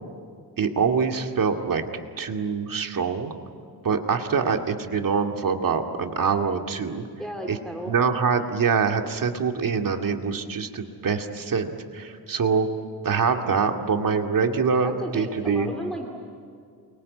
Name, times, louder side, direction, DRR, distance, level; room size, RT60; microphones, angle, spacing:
voice 1, 0.6-1.8 2.2-3.3 3.8-7.0 7.5-7.6 7.9-12.7 13.0-15.7, right 5 dB, 50° right, 4 dB, 2.3 m, -24 dB
voice 2, 7.2-7.9 14.8-16.1, equal, ahead, 1 dB, 2.8 m, -34 dB
29.0 x 23.5 x 8.6 m, 2.3 s
cardioid pair, 115°, 41 cm